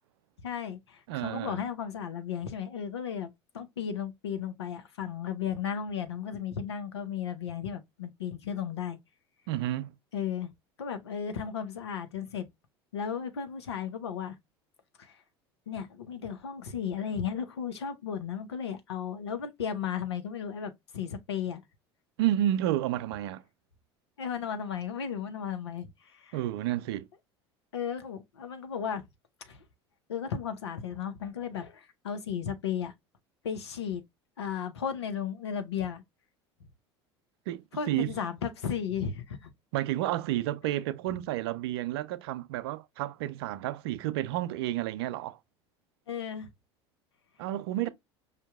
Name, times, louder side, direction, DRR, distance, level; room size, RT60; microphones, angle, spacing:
voice 1, 0.4-9.0 10.1-10.5 10.8-12.5 12.9-14.4 15.0-15.2 15.7-21.6 24.2-26.4 27.7-29.0 29.5-29.6 30.1-32.9 33.4-34.0 34.4-36.0 37.7-39.5 46.1-46.5, left 7 dB, 85° left, 0.7 m, -35 dB
voice 2, 1.1-1.6 9.5-9.9 22.2-23.4 26.3-27.1 37.5-38.1 39.7-45.4 47.4-47.9, right 13 dB, 70° right, 0.4 m, -31 dB
5.1 x 2.7 x 2.2 m
hypercardioid pair, 75°, 14 cm